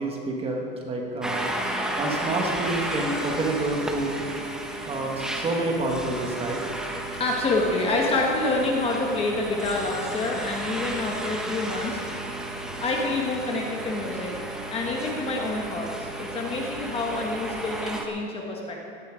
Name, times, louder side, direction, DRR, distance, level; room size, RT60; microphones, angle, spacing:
voice 1, 0.0-4.2 4.9-6.6, right 2 dB, 20° right, 1 dB, 1.4 m, -28 dB
sound 1, 1.2-18.1, right 1 dB, ahead, 0.7 m, -33 dB
sound 2, 6.7-17.8, right 3 dB, 85° right, 3.4 m, -46 dB
voice 2, 7.2-12.0 12.8-14.3 14.7-18.9, left 2 dB, 20° left, 0 dB, 1.2 m, -27 dB
17.0 x 10.5 x 5.0 m, 2.5 s
cardioid pair, 180°, 30 cm